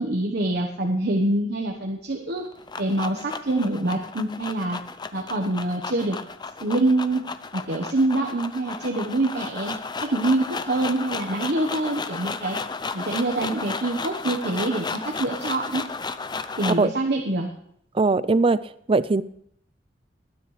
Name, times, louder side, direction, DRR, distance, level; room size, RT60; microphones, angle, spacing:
voice 1, 0.0-2.5 2.8-4.8 5.1-6.2 6.6-7.2 7.5-12.6 12.9-15.8 16.6-17.5, right 2 dB, 60° right, 1 dB, 1.2 m, -25 dB
sound 1, 2.3-16.9, left 4 dB, 25° left, 0.6 m, -34 dB
voice 2, 17.9-19.2, right 3 dB, 30° right, 17 dB, 0.4 m, -21 dB
20.0 x 9.9 x 3.3 m, 0.68 s
head